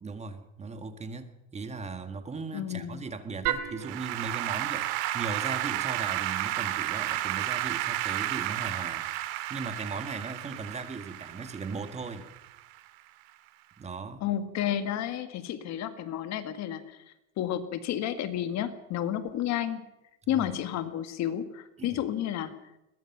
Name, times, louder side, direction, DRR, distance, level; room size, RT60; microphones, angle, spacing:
voice 1, 0.0-12.3 13.8-14.2 20.3-20.5 21.8-22.0, right 4 dB, 20° right, 8 dB, 1.9 m, -38 dB
voice 2, 2.5-3.0 14.2-17.0 17.4-19.8 20.3-22.5, left 11 dB, 50° left, 10 dB, 1.8 m, -31 dB
Applause / Keyboard (musical), 3.5-12.8, right 14 dB, 70° right, 2.1 m, -32 dB
22.0 x 20.5 x 6.0 m, 0.90 s
cardioid pair, 140°, 34 cm